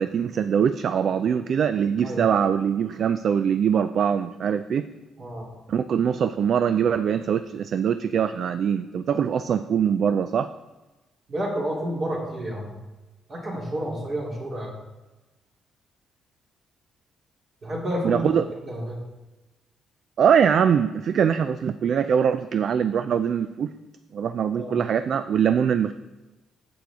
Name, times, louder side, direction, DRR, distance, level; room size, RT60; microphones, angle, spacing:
voice 1, 0.0-4.9 5.7-10.5 18.0-18.4 20.2-23.7 24.1-25.9, right 7 dB, 60° right, 11 dB, 0.3 m, -22 dB
voice 2, 11.3-12.7 13.3-14.7 17.6-18.2 18.6-19.0 24.5-24.8, right 1 dB, 45° right, -4 dB, 3.1 m, -30 dB
8.7 x 7.7 x 3.6 m, 1.1 s
cardioid pair, 90°, 0 cm